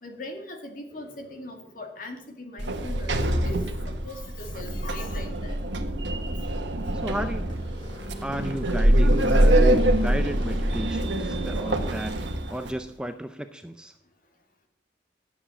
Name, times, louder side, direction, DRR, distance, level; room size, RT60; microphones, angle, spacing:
voice 1, 0.0-5.6 9.3-9.4, left 2 dB, 45° left, 3 dB, 2.1 m, -40 dB
sound 1, 0.9-2.5 7.5-12.3, right 2 dB, 25° left, 2.8 m, -44 dB
Sliding door, 2.6-12.7, right 1 dB, 75° right, 1.2 m, -24 dB
voice 2, 6.9-7.4 8.2-13.9, equal, 5° right, 8 dB, 0.4 m, -33 dB
11.0 x 7.7 x 7.0 m, 0.76 s
head